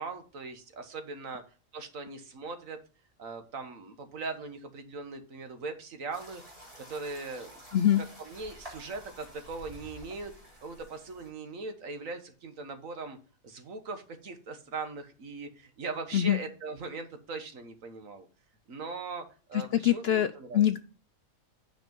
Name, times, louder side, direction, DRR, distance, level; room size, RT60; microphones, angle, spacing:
voice 1, 0.0-1.4 1.7-2.8 3.2-6.4 6.9-7.5 8.0-10.3 10.6-13.2 13.4-18.3 18.7-20.7, right 4 dB, 70° right, 7 dB, 1.7 m, -40 dB
sound 1, 6.1-11.3, equal, 25° right, 3.9 m, -50 dB
voice 2, 19.5-20.3 20.5-20.8, left 11 dB, 65° left, 11 dB, 0.6 m, -24 dB
9.2 x 5.2 x 5.2 m, 0.36 s
omnidirectional pair, 1.4 m